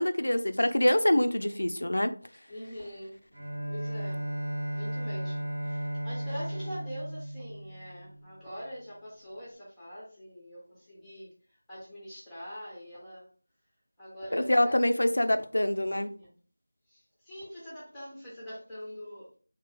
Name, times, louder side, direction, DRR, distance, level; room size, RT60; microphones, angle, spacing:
voice 1, 0.0-2.1 14.3-16.1, left 1 dB, 75° left, 0.4 m, -25 dB
voice 2, 2.5-3.2 3.7-4.2 4.7-13.3 14.0-14.8 15.1-15.2 15.8-16.4 16.9-19.3, equal, 5° left, 0.7 m, -43 dB
Bowed string instrument, 3.3-8.4, right 1 dB, 20° right, 1.0 m, -35 dB
3.1 x 2.2 x 3.4 m
figure-of-eight pair, 175°, 0 cm